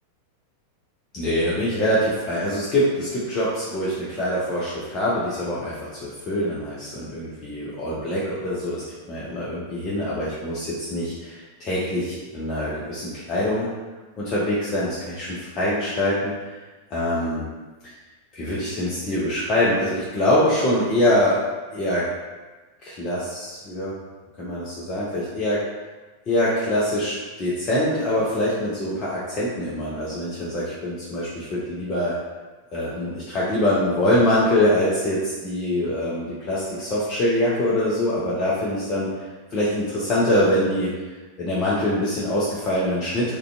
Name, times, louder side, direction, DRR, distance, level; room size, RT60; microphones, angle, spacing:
voice 1, 1.1-13.7 14.2-16.3 16.9-17.5 18.3-21.4 21.7-22.1 22.8-23.9 24.4-25.6 26.3-32.1 32.7-39.1 39.5-40.9 41.4-43.3, left 1 dB, 30° left, -7 dB, 0.5 m, -24 dB
2.4 x 2.2 x 2.5 m, 1.3 s
figure-of-eight pair, 90°, 0 cm